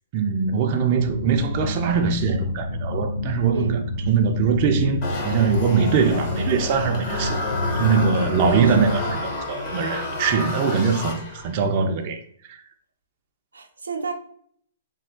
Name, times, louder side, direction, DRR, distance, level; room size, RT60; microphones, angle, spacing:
voice 1, 0.1-7.4 7.8-9.0 9.5-12.6, right 5 dB, 45° right, 0.4 m, -22 dB
Swelled Ambience, 0.9-9.1, left 2 dB, 80° left, 1.0 m, -29 dB
voice 2, 3.5-3.8 7.9-8.9 13.5-14.1, right 3 dB, 90° right, 0.6 m, -31 dB
sound 1, 5.0-11.6, left 2 dB, 45° left, 1.0 m, -30 dB
3.2 x 2.2 x 3.6 m
hypercardioid pair, 125°, 0 cm